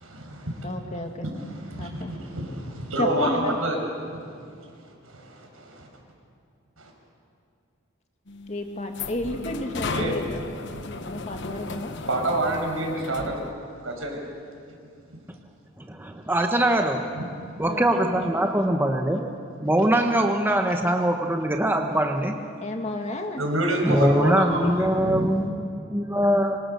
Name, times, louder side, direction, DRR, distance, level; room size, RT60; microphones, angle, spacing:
voice 1, 0.0-0.7 1.2-3.8 4.1-4.2 5.1-5.9 6.8-6.9 9.9-10.1 12.1-13.4 13.8-14.2 17.1-17.2 23.4-25.3, right 1 dB, 80° right, 1 dB, 6.2 m, -28 dB
voice 2, 0.6-1.3 1.8-2.1 3.0-3.6 8.5-10.4 10.8-11.9 17.7-18.3 22.6-23.4 23.8-24.1 24.6-24.7, left 1 dB, 35° left, 4 dB, 2.1 m, -32 dB
sound 1, 8.3-13.5, left 3 dB, 60° left, 1.0 m, -35 dB
voice 3, 15.8-17.1 17.6-19.2 19.6-22.4 23.8-26.6, right 1 dB, 10° right, 3 dB, 1.2 m, -22 dB
26.0 x 25.5 x 6.9 m, 2.4 s
head